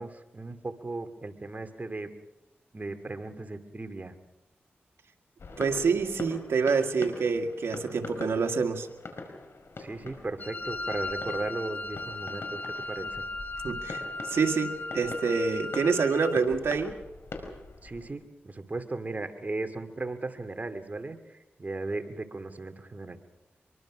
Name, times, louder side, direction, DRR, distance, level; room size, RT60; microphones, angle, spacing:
voice 1, 0.0-2.1 2.7-4.2 9.8-13.2 17.8-23.2, right 2 dB, 40° right, 7 dB, 2.5 m, -36 dB
sound 1, 5.4-18.1, left 3 dB, 70° left, 5.0 m, -43 dB
voice 2, 5.6-8.9 13.6-17.0, right 5 dB, 80° right, 5 dB, 2.0 m, -27 dB
Wind instrument woodwind instrument, 10.4-16.4, left 2 dB, 45° left, 3.7 m, -36 dB
24.5 x 23.0 x 6.2 m, 0.96 s
cardioid pair, 55°, 4 cm